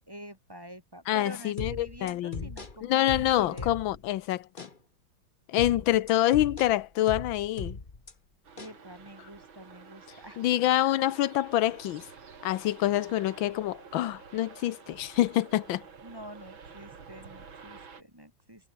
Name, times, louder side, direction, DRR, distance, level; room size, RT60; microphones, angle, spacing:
voice 1, 0.1-3.8 8.5-10.4 16.0-18.7, equal, 10° right, 2.1 m, -46 dB
voice 2, 1.1-2.5 2.8-4.7 5.5-7.8 10.4-12.1 12.4-15.8, left 14 dB, 90° left, 1.5 m, -26 dB
sound 1, 1.6-4.1 4.6-4.8 5.6-8.1 8.6-8.8, left 3 dB, 25° left, 2.1 m, -39 dB
sound 2, 8.4-18.0, right 5 dB, 90° right, 3.5 m, -50 dB
omnidirectional pair, 2.1 m